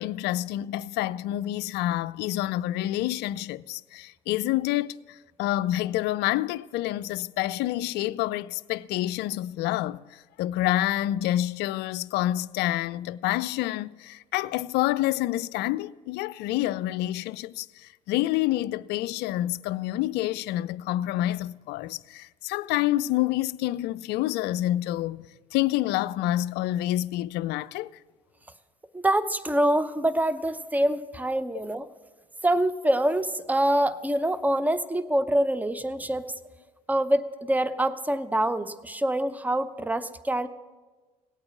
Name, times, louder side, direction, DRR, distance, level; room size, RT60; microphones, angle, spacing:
voice 1, 0.0-25.3 25.5-27.9, left 14 dB, 60° left, 0.4 m, -28 dB
voice 2, 28.9-31.9 32.4-36.3 36.9-40.5, right 1 dB, 10° right, 0.7 m, -25 dB
17.5 x 8.7 x 5.9 m
hypercardioid pair, 55°, 20 cm